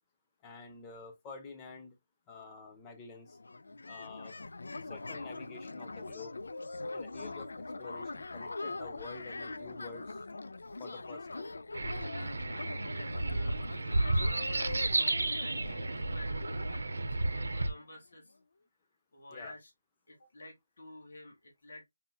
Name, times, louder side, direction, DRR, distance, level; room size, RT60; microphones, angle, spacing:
voice 1, 0.4-2.0 2.3-3.4 3.9-4.3 4.8-6.4 6.9-7.5 7.8-10.2 10.8-11.6 19.3-19.6, left 4 dB, 10° left, 0.5 m, -48 dB
sound 1, 3.0-3.1 3.3-17.9, left 3 dB, 85° left, 0.3 m, -43 dB
sound 2, 11.7-17.7, right 2 dB, 85° right, 0.7 m, -32 dB
voice 2, 12.1-18.4 19.1-19.7 20.1-21.9, left 1 dB, 50° left, 1.7 m, -51 dB
5.4 x 2.7 x 2.2 m
hypercardioid pair, 175°, 0 cm